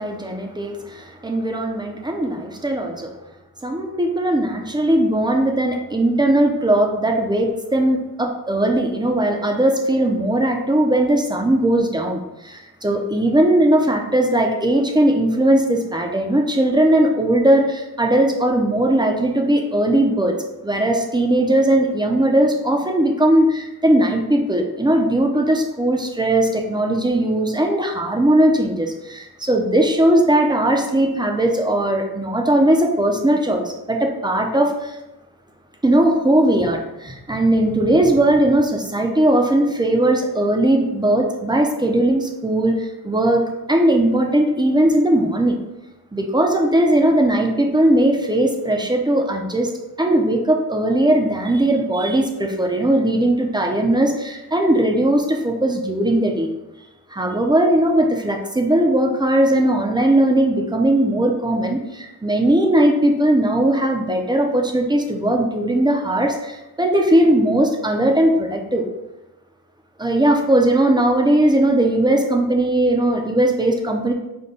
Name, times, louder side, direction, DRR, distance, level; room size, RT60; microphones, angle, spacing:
voice 1, 0.0-3.1 3.6-20.3 20.6-35.0 35.8-45.6 46.1-49.7 50.0-56.5 57.1-68.8 70.0-74.1, right 1 dB, 10° right, 2 dB, 0.5 m, -18 dB
5.2 x 2.2 x 4.0 m, 0.96 s
wide cardioid pair, 115°, 38 cm